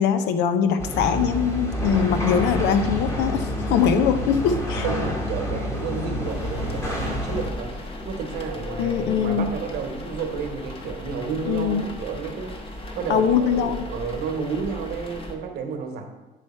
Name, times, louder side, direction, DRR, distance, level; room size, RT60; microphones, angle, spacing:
voice 1, 0.0-4.9 8.8-9.5 11.4-11.9 13.1-13.9, left 7 dB, 90° left, 10 dB, 0.6 m, -22 dB
sound 1, 0.8-7.5, left 1 dB, 15° left, 1.4 m, -28 dB
sound 2, 1.8-11.3, left 2 dB, 70° left, 2.2 m, -42 dB
voice 2, 4.8-7.7 8.0-16.0, right 5 dB, 75° right, 4 dB, 1.1 m, -31 dB
sound 3, 6.2-15.4, left 1 dB, 35° left, 1.0 m, -37 dB
9.2 x 3.3 x 4.3 m, 1.1 s
cardioid pair, 110°, 17 cm